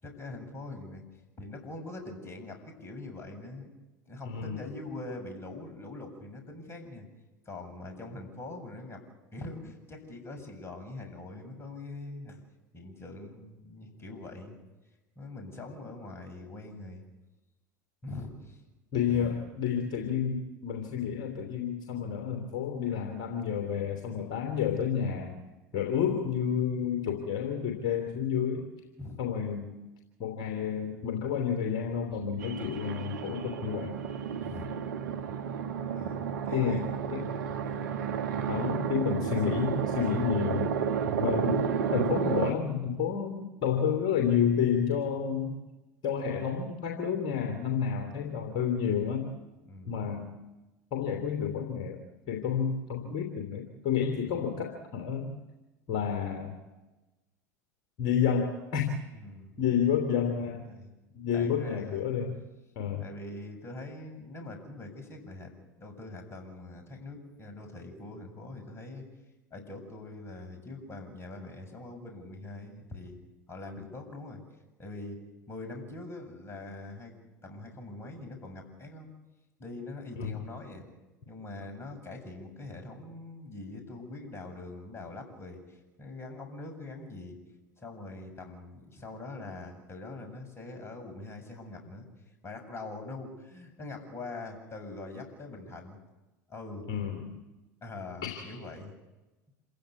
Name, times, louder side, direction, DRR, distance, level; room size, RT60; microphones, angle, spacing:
voice 1, 0.0-1.0 1.4-3.7 4.1-7.1 7.5-9.0 9.3-12.4 12.7-14.6 15.2-17.0 18.0-18.6 19.0-19.3 29.0-29.2 34.4-34.7 35.7-37.0 49.7-49.9 54.2-54.5 59.1-59.5 60.4-60.9 61.3-62.0 63.0-65.5 65.8-69.1 69.5-73.2 73.5-74.4 74.8-79.1 79.6-80.9 81.3-87.4 87.8-92.1 92.4-96.0 96.5-96.9 97.8-98.9, left 2 dB, 25° left, 4 dB, 7.8 m, -43 dB
voice 2, 4.2-4.6 18.9-25.4 25.7-28.7 29.2-29.7 30.2-33.9 36.5-36.8 37.1-37.3 38.5-40.7 41.2-45.6 46.0-49.3 49.9-50.3 50.9-52.0 52.3-55.3 55.9-56.6 58.0-58.9 59.6-60.7 61.1-62.4 62.7-63.0 80.2-80.4 96.9-97.3 98.2-98.6, left 7 dB, 50° left, 4 dB, 3.2 m, -30 dB
sound 1, 32.4-42.5, right 7 dB, 70° right, 1.7 m, -31 dB
27.5 x 16.0 x 8.5 m, 1.1 s
hypercardioid pair, 80°, 10 cm